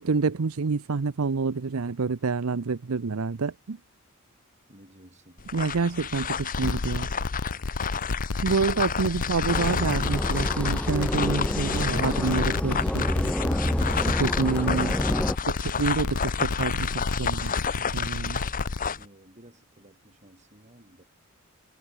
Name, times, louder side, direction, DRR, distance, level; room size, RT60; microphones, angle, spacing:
voice 1, 0.0-3.8 5.5-7.1 8.4-13.1 14.0-15.0 15.7-17.5 17.9-18.4, right 4 dB, 80° right, 0.7 m, -27 dB
voice 2, 4.7-5.5 18.8-21.0, right 1 dB, 35° right, 7.7 m, -54 dB
sound 1, 5.4-19.1, left 7 dB, 40° left, 1.3 m, -31 dB
sound 2, 6.4-18.9, left 3 dB, 90° left, 0.9 m, -31 dB
sound 3, 9.5-15.4, equal, 5° left, 0.7 m, -28 dB
head